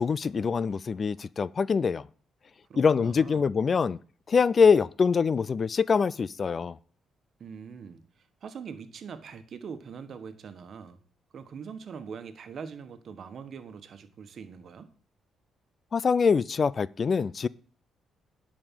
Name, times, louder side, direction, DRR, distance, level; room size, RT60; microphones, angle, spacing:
voice 1, 0.0-2.1 2.8-4.0 4.3-6.8 15.9-17.5, left 5 dB, 40° left, 0.4 m, -24 dB
voice 2, 2.7-3.5 7.4-11.0 11.3-14.9, right 6 dB, 55° right, 1.3 m, -43 dB
11.0 x 5.1 x 7.5 m
cardioid pair, 90°, 0 cm